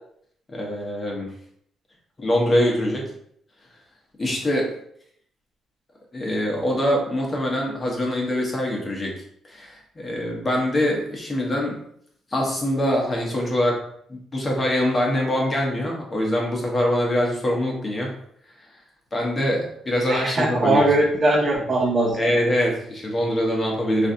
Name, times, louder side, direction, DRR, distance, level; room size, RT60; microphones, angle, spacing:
voice 1, 0.5-1.3 2.2-3.1 4.2-4.7 6.1-11.8 12.3-13.8 14.1-18.2 19.1-20.9 22.2-24.1, equal, 30° left, -1 dB, 0.9 m, -24 dB
voice 2, 20.1-22.2, right 2 dB, 35° right, -4 dB, 0.7 m, -20 dB
3.1 x 2.5 x 2.6 m, 0.67 s
cardioid pair, 90°, 0 cm